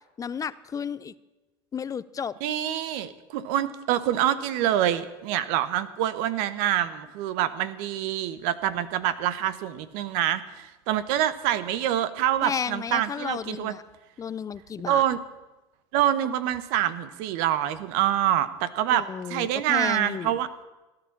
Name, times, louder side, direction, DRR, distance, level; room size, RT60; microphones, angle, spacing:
voice 1, 0.2-1.1 1.7-2.4 12.4-13.8 14.2-15.0 18.9-20.4, left 7 dB, 25° left, 17 dB, 0.6 m, -33 dB
voice 2, 2.4-13.7 14.9-15.2 15.9-20.5, right 11 dB, 70° right, 14 dB, 1.1 m, -26 dB
16.5 x 11.0 x 7.4 m, 1.1 s
supercardioid pair, 100°, 13 cm